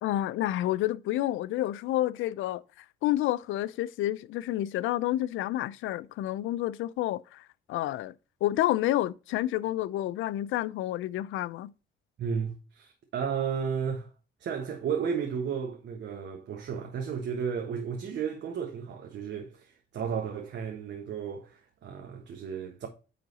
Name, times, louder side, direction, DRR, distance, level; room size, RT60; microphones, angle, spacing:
voice 1, 0.0-8.1 8.4-11.7, left 14 dB, 85° left, 0.5 m, -29 dB
voice 2, 12.2-14.1 14.4-22.9, right 7 dB, 65° right, 1.4 m, -33 dB
9.5 x 3.9 x 4.0 m
cardioid pair, 90°, 20 cm